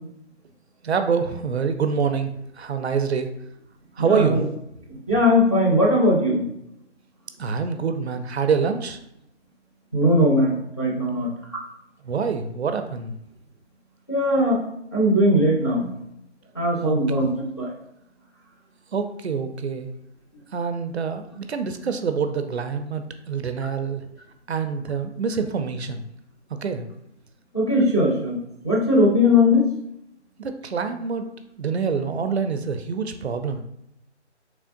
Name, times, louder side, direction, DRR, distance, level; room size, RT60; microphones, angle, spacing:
voice 1, 0.8-3.3 4.0-4.5 7.4-9.0 12.0-13.2 16.8-17.4 18.9-19.9 20.5-24.1 24.5-26.0 26.6-26.9 30.4-31.3 31.6-33.6, right 6 dB, 65° right, 8 dB, 0.5 m, -26 dB
voice 2, 4.0-4.4 4.9-6.4 9.9-11.3 14.1-14.6 14.9-15.9 16.5-17.3 17.6-17.7 27.5-28.4 28.6-29.6, left 1 dB, 25° left, -5 dB, 0.4 m, -19 dB
3.6 x 3.2 x 2.6 m, 0.79 s
figure-of-eight pair, 160°, 36 cm